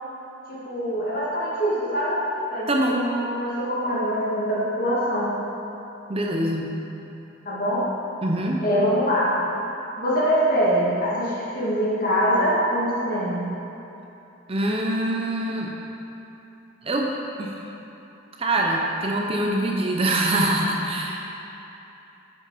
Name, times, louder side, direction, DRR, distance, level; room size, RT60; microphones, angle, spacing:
voice 1, 0.5-2.2 2.5-5.3 7.4-7.9 8.6-9.4 10.0-13.5, equal, 45° left, -7 dB, 2.0 m, -24 dB
voice 2, 2.7-3.0 6.1-6.7 8.2-8.6 14.5-15.7 16.8-17.1 17.4-17.6 18.4-21.2, right 1 dB, 30° right, 0 dB, 0.6 m, -24 dB
9.2 x 5.7 x 5.0 m, 3.0 s
head